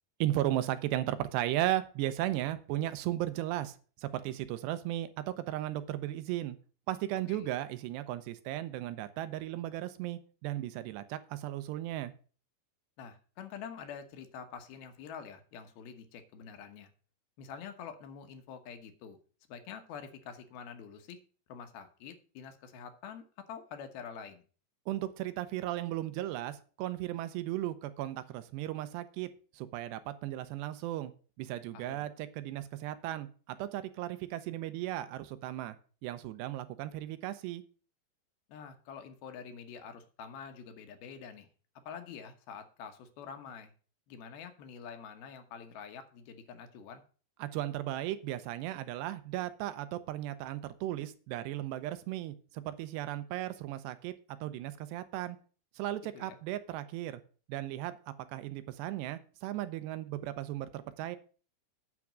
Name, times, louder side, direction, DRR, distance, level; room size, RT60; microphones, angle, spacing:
voice 1, 0.2-3.7 4.0-6.6 6.9-12.1 24.9-29.3 29.5-31.1 31.4-35.8 36.0-37.6 47.4-54.1 54.4-55.4 55.8-57.2 57.5-58.0 58.3-61.2, right 14 dB, 90° right, 13 dB, 3.0 m, -36 dB
voice 2, 13.0-16.9 17.4-19.2 19.5-21.2 21.5-24.4 31.7-32.1 38.5-41.5 41.9-43.7 44.1-47.0 56.1-56.4, left 7 dB, 70° left, 8 dB, 2.8 m, -46 dB
9.2 x 6.0 x 7.4 m, 0.39 s
omnidirectional pair, 4.8 m